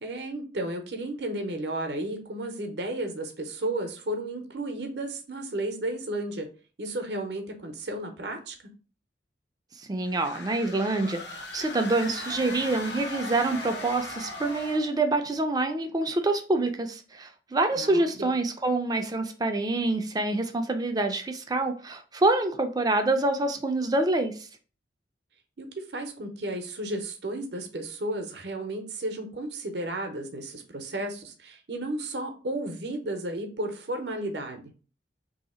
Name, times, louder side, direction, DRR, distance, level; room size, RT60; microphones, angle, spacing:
voice 1, 0.0-6.5 6.8-8.5 17.7-18.3 25.6-34.7, right 1 dB, 70° right, 5 dB, 0.7 m, -33 dB
voice 2, 9.9-11.2 11.5-24.4, right 2 dB, 20° right, 6 dB, 0.4 m, -26 dB
sound 1, 10.1-15.0, left 2 dB, 70° left, 0.9 m, -38 dB
3.1 x 2.8 x 4.2 m, 0.37 s
head